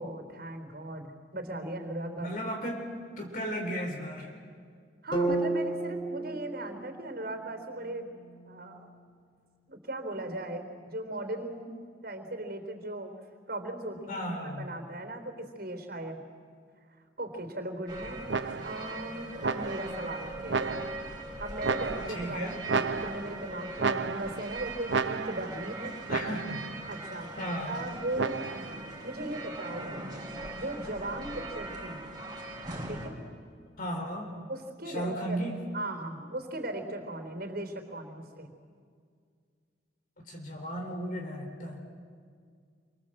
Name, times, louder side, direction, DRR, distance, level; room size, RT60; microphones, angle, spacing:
voice 1, 0.0-2.3 5.0-8.1 8.5-8.9 9.7-11.8 12.0-13.1 13.5-16.2 17.2-18.2 18.6-20.8 21.4-25.9 26.9-27.3 27.7-28.4 29.0-30.0 30.6-32.0 32.9-33.2 34.5-35.4 35.7-38.5, right 1 dB, 55° right, 5 dB, 3.7 m, -38 dB
voice 2, 2.1-4.3 14.1-14.7 22.1-22.6 26.1-26.6 27.4-27.8 33.8-34.3 34.9-35.6 40.2-41.8, equal, 50° left, 1 dB, 3.8 m, -35 dB
sound 1, 5.1-9.2, right 2 dB, 25° left, 4.4 m, -34 dB
sound 2, 17.9-33.1, right 2 dB, 20° right, 4.7 m, -40 dB
sound 3, 18.3-18.9 19.4-20.0 20.5-21.2 21.6-22.3 22.7-23.4 23.8-24.5 24.9-25.6 26.1-26.7 28.2-28.8, right 4 dB, 75° right, 0.7 m, -32 dB
28.0 x 25.0 x 7.8 m, 2.1 s
head